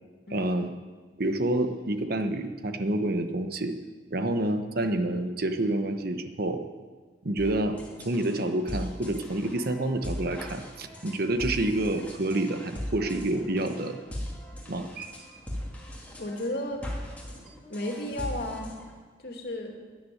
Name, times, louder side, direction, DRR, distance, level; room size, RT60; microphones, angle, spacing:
voice 1, 0.3-0.7 1.2-3.8 4.1-6.6 7.2-7.8 8.0-14.0 14.7-15.4, right 1 dB, 55° right, 8 dB, 1.1 m, -28 dB
sound 1, 7.4-18.9, equal, 10° left, 2.8 m, -39 dB
voice 2, 16.2-16.8 17.7-18.7 19.2-19.7, left 1 dB, 60° left, 2 dB, 2.6 m, -33 dB
13.0 x 10.5 x 9.4 m, 1.5 s
head